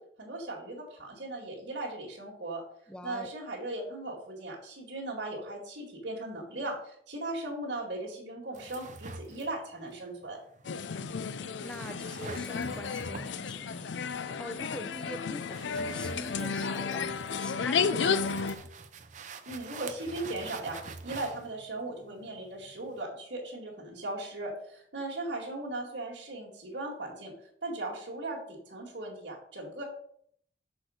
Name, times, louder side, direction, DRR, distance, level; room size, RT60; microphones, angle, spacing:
voice 1, 0.0-2.6 3.0-10.4 19.5-27.3 27.6-29.8, right 2 dB, 80° right, -5 dB, 2.0 m, -38 dB
voice 2, 2.9-3.4 11.6-18.7, equal, 5° left, 8 dB, 0.5 m, -44 dB
sound 1, 8.5-23.0, right 4 dB, 45° right, 0.6 m, -47 dB
sound 2, 10.6-18.6, left 5 dB, 90° left, 0.5 m, -32 dB
6.4 x 4.7 x 6.3 m, 0.65 s
head